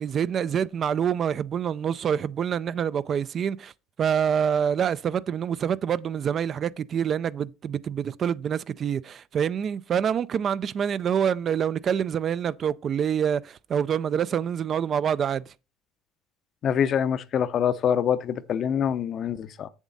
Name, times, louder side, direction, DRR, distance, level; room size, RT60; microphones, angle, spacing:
voice 1, 0.0-3.7 4.0-15.5, right 8 dB, 40° right, 0.4 m, -26 dB
voice 2, 16.6-19.7, left 8 dB, 50° left, 0.6 m, -25 dB
7.3 x 7.2 x 3.9 m
cardioid pair, 110°, 0 cm